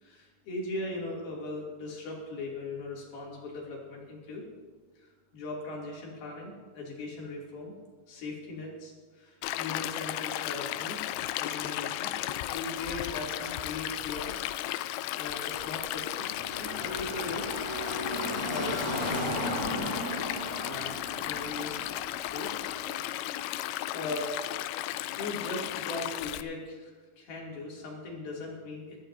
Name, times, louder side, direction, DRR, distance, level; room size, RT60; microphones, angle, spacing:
voice 1, 0.0-4.4 5.0-7.7 8.1-11.0 11.4-17.5 18.5-19.7 20.2-21.0 21.2-21.8 22.3-23.0 23.9-24.3 25.2-29.0, left 2 dB, 65° left, -3 dB, 4.4 m, -39 dB
Stream, 9.4-26.4, left 14 dB, 90° left, 2.8 m, -35 dB
Car passing by / Traffic noise roadway noise, 15.9-22.7, left 1 dB, 10° left, 4.2 m, -36 dB
22.5 x 14.0 x 2.7 m, 1.5 s
omnidirectional pair, 4.9 m